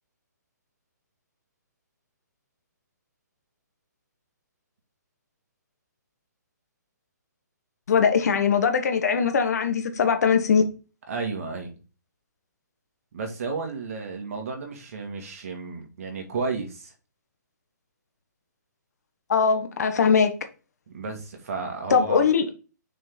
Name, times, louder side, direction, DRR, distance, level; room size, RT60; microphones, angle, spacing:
voice 1, 7.9-10.6 19.3-20.3 21.9-22.5, left 6 dB, 60° left, 1.3 m, -21 dB
voice 2, 11.1-11.7 13.1-16.9 20.9-22.2, right 4 dB, 50° right, 2.0 m, -32 dB
6.2 x 3.8 x 4.6 m
hypercardioid pair, 160°, 10 cm